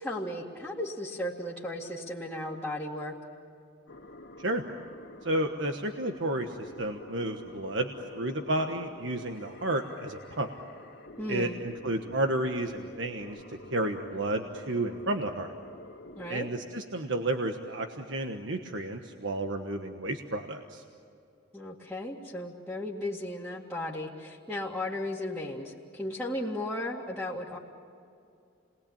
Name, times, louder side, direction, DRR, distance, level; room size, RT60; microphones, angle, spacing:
voice 1, 0.0-3.2 11.2-11.6 16.2-16.5 21.5-27.6, left 1 dB, 5° left, -8 dB, 2.1 m, -35 dB
sound 1, 3.9-16.5, left 2 dB, 75° left, 2.0 m, -48 dB
voice 2, 5.2-10.5 11.3-15.5 16.3-20.8, right 1 dB, 80° right, 5 dB, 1.3 m, -32 dB
30.0 x 21.0 x 8.8 m, 2.5 s
head